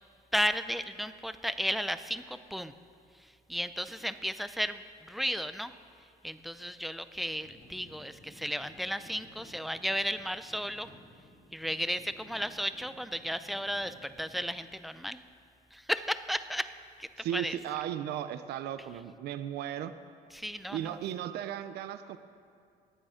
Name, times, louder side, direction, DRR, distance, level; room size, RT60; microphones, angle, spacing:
voice 1, 0.3-2.7 3.2-5.7 6.2-10.9 11.5-15.2 15.7-16.7 17.0-17.6 20.3-21.0, equal, ahead, 12 dB, 0.5 m, -34 dB
sound 1, 7.3-14.6, left 2 dB, 70° left, 3.1 m, -56 dB
voice 2, 17.2-19.9 20.7-22.2, right 11 dB, 75° right, 11 dB, 0.6 m, -36 dB
19.5 x 8.9 x 5.1 m, 2.3 s
cardioid pair, 110°, 17 cm